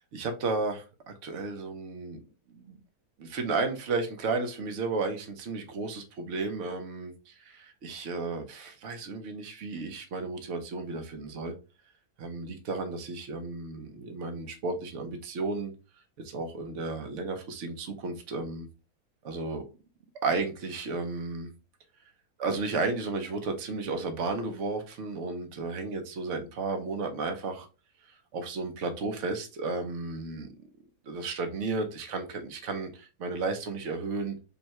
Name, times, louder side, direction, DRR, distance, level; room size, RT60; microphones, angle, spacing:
voice 1, 0.1-2.2 2.6-2.8 3.2-11.5 12.2-15.7 16.2-18.7 19.2-19.6 20.2-21.5 22.4-27.7 28.3-30.5 31.1-34.4, right 3 dB, 60° right, 1.0 m, -33 dB
5.3 x 2.2 x 2.9 m
omnidirectional pair, 1.6 m